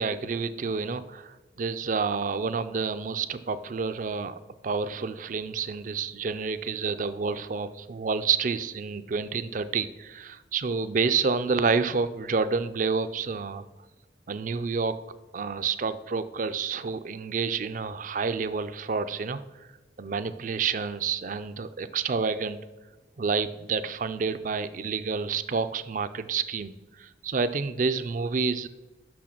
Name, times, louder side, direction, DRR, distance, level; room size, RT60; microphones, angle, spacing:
voice 1, 0.0-4.3 4.6-13.6 14.3-15.0 15.3-19.4 20.0-22.6 23.2-26.7 27.0-28.7, right 5 dB, 45° right, 12 dB, 0.4 m, -29 dB
6.3 x 6.3 x 5.9 m, 1.2 s
head